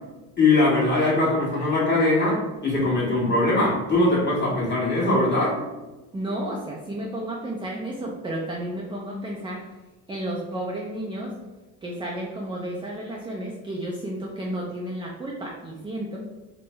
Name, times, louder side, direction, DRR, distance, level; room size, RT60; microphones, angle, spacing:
voice 1, 0.4-5.5, left 2 dB, 25° left, -6 dB, 1.4 m, -21 dB
voice 2, 6.1-9.6 10.1-11.3 11.8-16.2, right 1 dB, 15° right, -2 dB, 0.3 m, -32 dB
3.1 x 2.0 x 3.3 m, 1.1 s
supercardioid pair, 95°, 41 cm